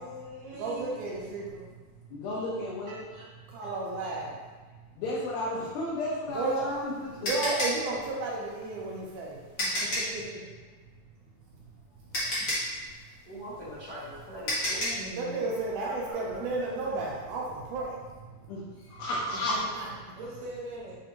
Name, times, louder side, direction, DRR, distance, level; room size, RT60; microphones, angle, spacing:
voice 1, 0.0-1.1 2.9-3.3 4.0-4.2 5.5-5.6 20.2-21.0, right 1 dB, 55° right, -8 dB, 1.4 m, -42 dB
voice 2, 0.5-1.7 3.5-4.4 6.3-6.6 7.2-10.4 12.2-12.3 15.1-18.5 19.5-20.2, right 3 dB, 80° right, -3 dB, 2.0 m, -33 dB
voice 3, 2.1-3.0 5.0-7.4 18.5-19.6, left 1 dB, 90° left, -8 dB, 2.7 m, -33 dB
sound 1, 6.3-10.2 11.6-11.7 12.1-15.1, left 1 dB, 55° left, 1.2 m, -31 dB
voice 4, 13.2-15.5 15.8-17.2, equal, 75° left, -12 dB, 0.9 m, -42 dB
7.1 x 2.6 x 2.8 m, 1.4 s
omnidirectional pair, 4.1 m